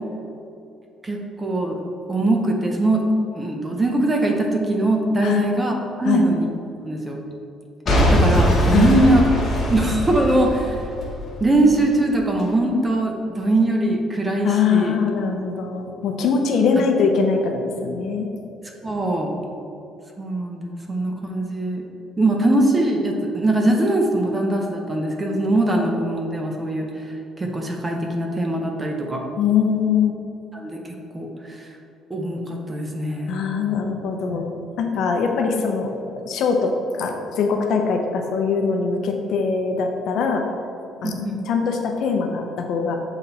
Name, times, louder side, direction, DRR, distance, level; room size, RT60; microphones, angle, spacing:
voice 1, 1.0-1.8 2.1-3.1 3.3-6.5 6.8-7.2 8.1-9.2 9.7-10.7 11.4-15.0 18.8-19.4 20.2-21.8 22.2-26.9 27.4-29.2 30.5-30.8 31.1-31.3 31.6-31.7 32.1-33.4 34.3-34.4 41.0-41.5, right 1 dB, 15° right, 1 dB, 0.6 m, -21 dB
Boom / Shatter / Crushing, 7.9-11.9 12.4-12.5, equal, 35° left, 1.1 m, -21 dB
voice 2, 14.4-18.3 29.4-30.2 33.3-34.5 34.8-40.4 41.0-43.0, left 5 dB, 55° left, 3 dB, 0.6 m, -22 dB
7.4 x 4.0 x 4.1 m, 2.8 s
cardioid pair, 175°, 0 cm